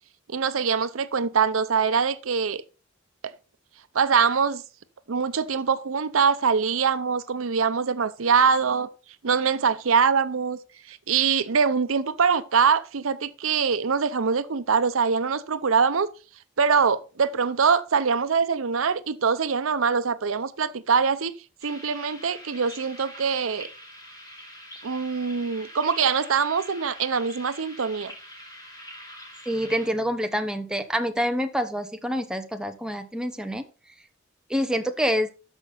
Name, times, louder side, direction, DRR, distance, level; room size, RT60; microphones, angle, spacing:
voice 1, 0.3-2.6 3.2-3.3 3.9-4.6 5.1-8.9 9.2-10.6 10.9-16.1 16.6-21.3 21.6-23.7 24.8-28.1, right 6 dB, 90° right, 0.7 m, -23 dB
sound 1, 21.6-29.9, equal, 20° left, 3.7 m, -44 dB
voice 2, 29.5-33.6 34.5-35.3, equal, 5° right, 0.8 m, -27 dB
13.0 x 5.3 x 3.9 m
head